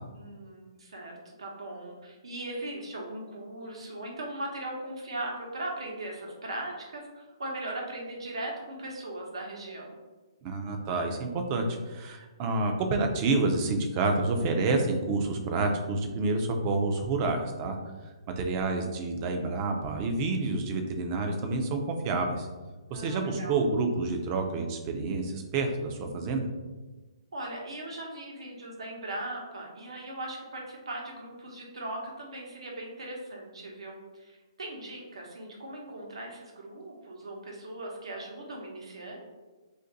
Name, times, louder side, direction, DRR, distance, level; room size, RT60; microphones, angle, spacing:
voice 1, 0.1-10.0 22.9-23.6 27.3-39.2, right 1 dB, 85° right, -1 dB, 0.9 m, -39 dB
voice 2, 10.4-17.8 18.4-22.5 22.9-26.5, right 3 dB, 25° right, 4 dB, 0.4 m, -28 dB
2.5 x 2.5 x 3.9 m, 1.2 s
hypercardioid pair, 165°, 3 cm